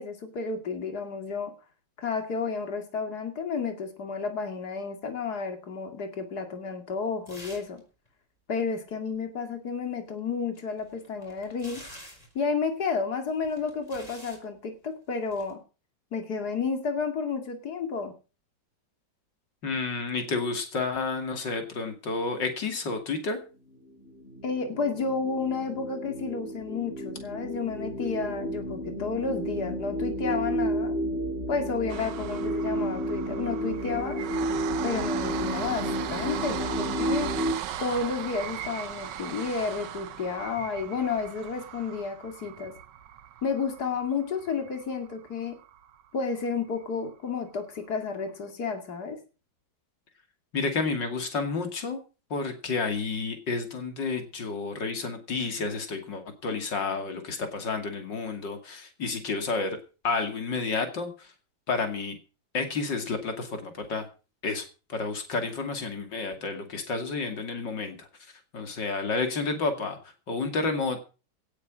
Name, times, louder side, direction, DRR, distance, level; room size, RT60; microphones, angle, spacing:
voice 1, 0.0-1.5 2.0-7.8 8.5-11.8 12.3-15.6 16.1-18.1 24.4-31.0 31.5-34.2 34.8-37.3 37.8-42.7 43.4-45.6 46.1-49.2, left 5 dB, 60° left, 6 dB, 2.9 m, -31 dB
sound 1, 7.3-7.8 8.1-8.2 10.5-12.4 13.3-14.4 15.2-15.5, left 1 dB, 20° left, 4.9 m, -47 dB
voice 2, 19.6-23.4 50.5-52.0 52.3-59.8 60.0-61.3 61.7-62.2 62.5-64.1 64.4-70.0 70.3-71.0, left 4 dB, 90° left, 6 dB, 3.2 m, -30 dB
sound 2, 23.7-37.5, right 1 dB, 35° left, 3.6 m, -32 dB
sound 3, 31.9-46.0 46.4-46.5 46.8-46.9, right 10 dB, 80° right, 1.5 m, -38 dB
17.5 x 8.5 x 6.2 m, 0.35 s
omnidirectional pair, 1.9 m